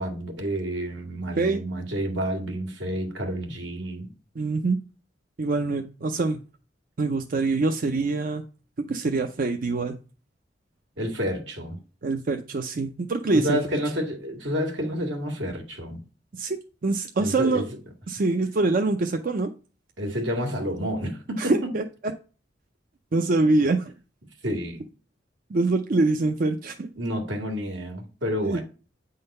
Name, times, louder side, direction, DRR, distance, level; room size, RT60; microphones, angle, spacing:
voice 1, 0.0-4.1 11.0-11.8 13.3-16.0 17.2-17.7 20.0-21.7 24.4-24.8 27.0-28.6, equal, 80° right, 1.9 m, -29 dB
voice 2, 4.4-4.8 5.4-6.4 7.0-8.4 8.9-10.0 12.0-13.6 16.3-16.6 16.8-17.6 18.1-19.5 21.4-21.8 23.1-23.9 25.5-26.9 28.4-28.6, right 3 dB, 50° right, 0.5 m, -24 dB
8.6 x 3.9 x 5.3 m
head